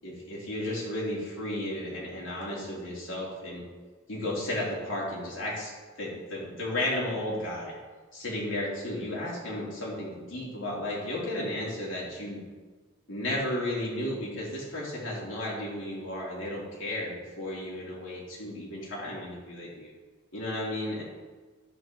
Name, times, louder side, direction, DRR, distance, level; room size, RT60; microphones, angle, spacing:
voice 1, 0.0-3.7 4.1-5.7 6.0-7.7 8.1-12.4 13.1-19.9 20.3-21.0, left 1 dB, 70° left, -6 dB, 3.2 m, -33 dB
10.5 x 7.7 x 3.9 m, 1.4 s
head